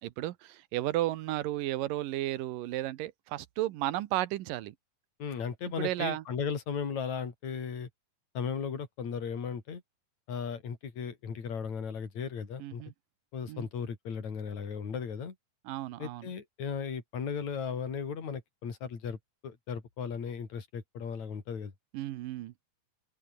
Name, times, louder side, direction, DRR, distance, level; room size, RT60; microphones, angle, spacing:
voice 1, 0.0-4.8 5.8-6.2 12.6-12.9 13.5-13.7 15.7-16.3 21.9-22.5, right 15 dB, 85° right, 2.6 m, -33 dB
voice 2, 5.2-7.9 8.3-9.8 10.3-12.8 13.3-15.3 16.0-19.2 19.4-21.7, left 6 dB, 55° left, 4.9 m, -36 dB
open air
omnidirectional pair, 3.8 m